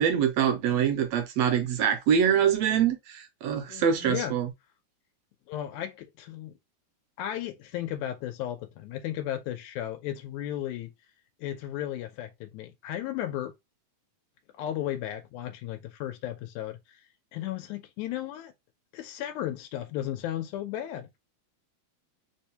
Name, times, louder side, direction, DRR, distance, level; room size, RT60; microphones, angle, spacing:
voice 1, 0.0-4.5, right 8 dB, 80° right, 1.6 m, -24 dB
voice 2, 3.7-4.3 5.5-6.6 7.2-10.9 11.4-13.5 14.6-17.0 17.3-18.5 18.9-21.1, left 12 dB, 85° left, 1.9 m, -35 dB
4.6 x 2.1 x 2.7 m
omnidirectional pair, 3.3 m